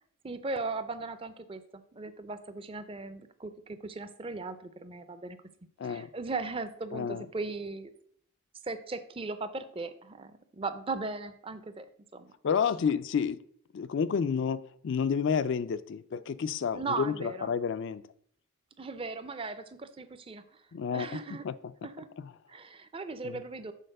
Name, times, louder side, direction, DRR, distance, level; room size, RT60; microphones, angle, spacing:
voice 1, 0.2-5.4 5.8-7.9 8.6-11.9 12.1-12.3 16.7-17.5 18.8-20.6 20.9-21.5 21.8-22.1 22.5-23.7, right 3 dB, 25° right, 11 dB, 0.5 m, -38 dB
voice 2, 5.8-6.1 6.9-7.3 12.4-13.4 13.7-18.0 20.7-21.2 21.4-21.5 22.2-22.3 23.2-23.4, left 6 dB, 55° left, 14 dB, 0.3 m, -30 dB
6.5 x 4.1 x 6.5 m, 0.63 s
head